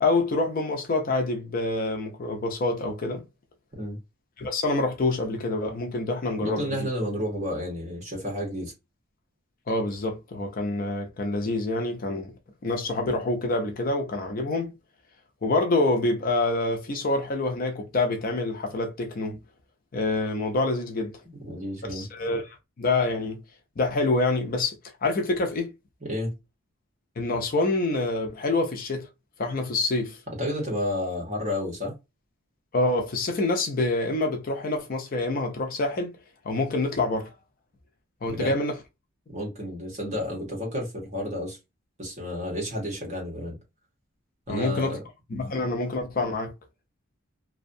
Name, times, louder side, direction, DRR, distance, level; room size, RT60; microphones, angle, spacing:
voice 1, 0.0-3.2 4.4-6.6 9.7-12.3 12.6-14.7 15.4-19.4 19.9-21.2 21.9-23.4 23.8-24.8 25.0-25.7 27.2-29.1 29.4-30.2 32.7-36.2 36.4-37.3 38.2-38.8 44.5-45.0 45.3-46.5, left 2 dB, 40° left, 0.4 m, -26 dB
voice 2, 6.4-8.7 21.4-22.1 26.0-26.3 30.4-31.9 38.3-38.5 39.3-41.6 42.0-43.6 44.5-45.0, left 1 dB, 30° right, 1.0 m, -31 dB
2.5 x 2.2 x 2.6 m
head